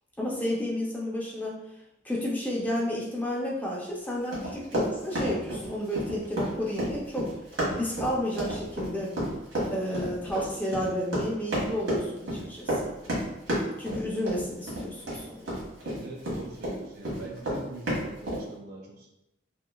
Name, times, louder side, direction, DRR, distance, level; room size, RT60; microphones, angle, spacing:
voice 1, 0.2-1.6 2.0-7.3 7.7-9.2 9.7-12.9 13.8-15.6, left 1 dB, 10° left, -4 dB, 0.4 m, -31 dB
Run, 4.3-16.7 17.0-18.4, equal, 80° right, 1.1 m, -30 dB
voice 2, 15.8-19.1, right 2 dB, 55° right, 0 dB, 0.5 m, -42 dB
2.9 x 2.4 x 2.2 m, 0.86 s
head